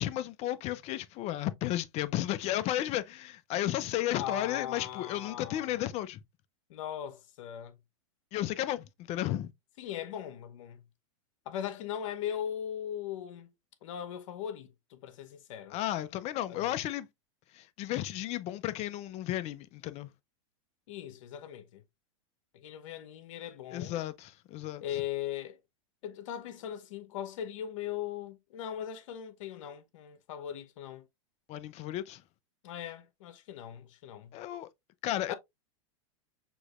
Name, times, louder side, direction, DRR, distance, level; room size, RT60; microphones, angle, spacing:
voice 1, 0.0-6.2 8.3-9.5 15.7-17.1 17.5-20.1 23.7-24.8 31.5-32.2 34.3-34.7 35.0-35.3, left 13 dB, 40° left, 0.6 m, -33 dB
voice 2, 4.2-5.9 6.7-7.8 9.8-10.8 11.4-13.5 13.8-15.8 16.5-16.7 20.9-21.8 22.5-24.0 24.8-25.6 26.0-31.1 32.6-34.3 35.3-35.4, left 10 dB, 70° left, 0.9 m, -39 dB
6.2 x 3.0 x 2.4 m
hypercardioid pair, 115°, 17 cm